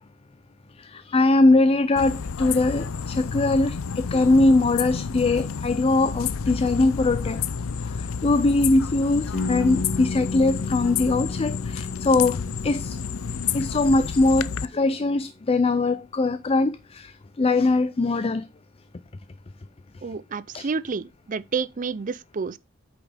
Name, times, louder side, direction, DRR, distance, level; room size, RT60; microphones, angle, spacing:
voice 1, 0.8-7.4 8.0-13.0 13.5-18.5 20.5-20.7, left 2 dB, 30° left, 0.4 m, -21 dB
sound 1, 2.0-14.6, left 6 dB, 90° left, 0.6 m, -30 dB
sound 2, 9.3-15.1, left 3 dB, 55° left, 1.9 m, -34 dB
voice 2, 20.0-22.6, right 5 dB, 40° right, 0.5 m, -29 dB
8.7 x 6.0 x 3.4 m
head